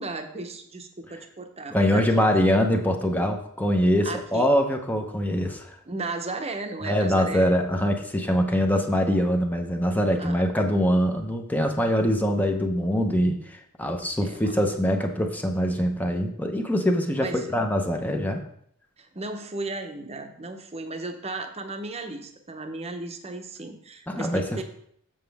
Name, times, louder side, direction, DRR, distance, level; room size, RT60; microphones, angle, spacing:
voice 1, 0.0-2.4 4.0-4.5 5.9-7.5 10.2-10.4 14.2-14.7 17.2-17.5 19.0-24.6, right 3 dB, 30° right, 6 dB, 0.8 m, -35 dB
voice 2, 1.7-5.8 6.8-18.4 24.1-24.5, equal, 10° left, 3 dB, 0.7 m, -23 dB
7.3 x 6.8 x 3.5 m, 0.67 s
head